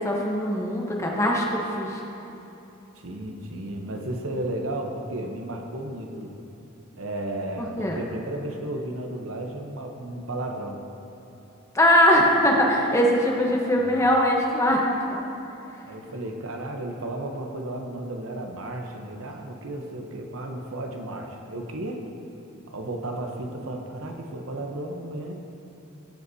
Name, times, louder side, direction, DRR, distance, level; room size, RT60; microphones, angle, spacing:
voice 1, 0.0-2.0 7.6-8.0 11.7-14.8, equal, 15° left, -1 dB, 1.0 m, -21 dB
voice 2, 2.9-6.3 7.0-10.8 13.5-14.0 15.9-22.0 22.7-25.3, right 1 dB, 75° right, 3 dB, 0.9 m, -34 dB
15.5 x 8.1 x 2.8 m, 2.9 s
head